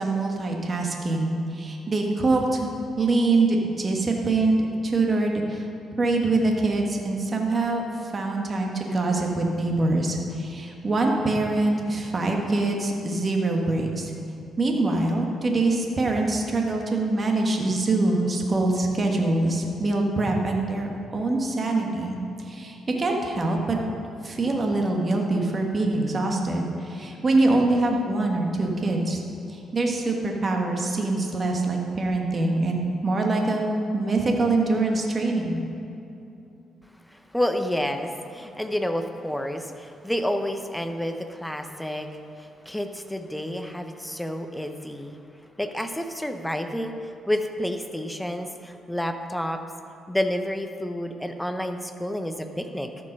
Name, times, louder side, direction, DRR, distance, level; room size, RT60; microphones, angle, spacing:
voice 1, 0.0-2.7 3.0-5.7 6.0-14.1 14.6-23.8 24.2-29.2 29.5-35.6, right 2 dB, 35° right, 1 dB, 1.3 m, -24 dB
voice 2, 37.1-45.2 45.6-49.6 50.1-52.9, left 1 dB, 5° left, 7 dB, 0.7 m, -29 dB
13.0 x 5.3 x 5.4 m, 2.8 s
cardioid pair, 90°, 0 cm